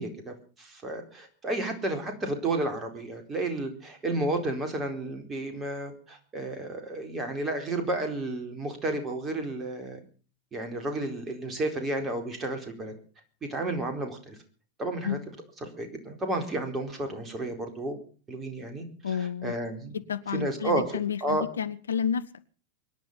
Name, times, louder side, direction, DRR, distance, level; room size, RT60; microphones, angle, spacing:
voice 1, 0.0-10.0 10.5-12.9 13.5-14.4 14.8-15.2 15.8-18.0 18.3-20.0 20.3-20.8 21.2-21.4, right 2 dB, 20° right, 5 dB, 4.3 m, -32 dB
voice 2, 19.0-19.5 19.9-22.2, left 7 dB, 70° left, 14 dB, 0.9 m, -30 dB
24.0 x 10.5 x 5.7 m, 0.40 s
figure-of-eight pair, 90°, 0 cm